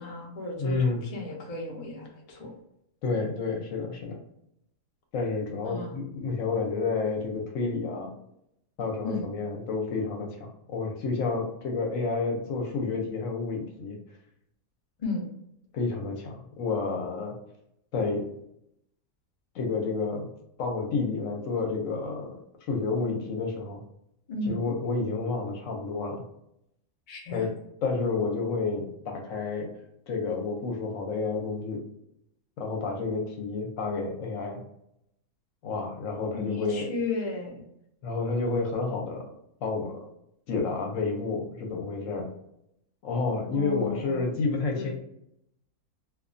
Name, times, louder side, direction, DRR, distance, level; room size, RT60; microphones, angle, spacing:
voice 1, 0.0-2.5 5.6-6.0 9.0-9.3 15.0-15.3 24.3-24.6 27.1-27.4 36.3-37.7 43.5-44.4 44.7-44.9, left 3 dB, 85° left, -2 dB, 0.3 m, -34 dB
voice 2, 0.6-1.0 3.0-4.2 5.1-8.1 8.8-14.0 15.7-17.4 17.9-18.3 19.5-20.3 20.6-22.4 22.7-23.8 24.5-26.2 27.3-27.5 27.8-29.7 30.1-31.8 32.6-34.6 35.6-36.9 38.0-39.3 39.6-40.0 40.5-42.3 43.0-44.9, left 4 dB, 65° left, 1 dB, 0.9 m, -30 dB
2.3 x 2.2 x 2.5 m, 0.77 s
omnidirectional pair, 1.6 m